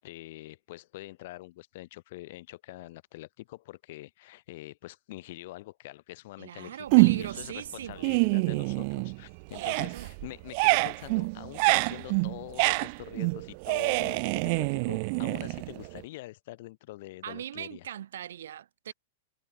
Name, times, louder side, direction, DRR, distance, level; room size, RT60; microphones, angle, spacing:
voice 1, 0.0-17.9, left 18 dB, 45° left, 6.9 m, -45 dB
voice 2, 6.4-8.1 9.6-10.1 17.2-18.9, right 10 dB, 75° right, 1.4 m, -40 dB
sound 1, 6.9-7.5 7.8-9.2 9.5-16.0, right 32 dB, 35° right, 0.7 m, -26 dB
supercardioid pair, 170°, 0 cm